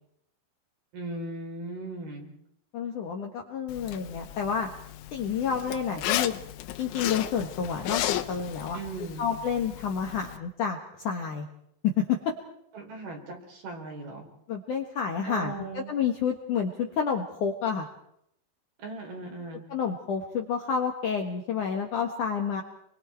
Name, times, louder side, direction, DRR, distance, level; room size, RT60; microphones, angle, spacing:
voice 1, 0.9-2.3 8.7-9.3 12.7-14.3 15.3-15.9 18.8-19.7, right 2 dB, 55° right, 2 dB, 6.1 m, -38 dB
voice 2, 2.7-4.7 5.1-6.3 6.8-8.8 9.2-11.5 11.8-12.3 14.5-17.9 19.7-22.6, left 7 dB, 60° left, 2 dB, 2.3 m, -29 dB
Zipper (clothing), 3.7-10.4, left 13 dB, 90° left, 3.4 m, -35 dB
28.5 x 23.5 x 4.6 m, 0.75 s
omnidirectional pair, 5.4 m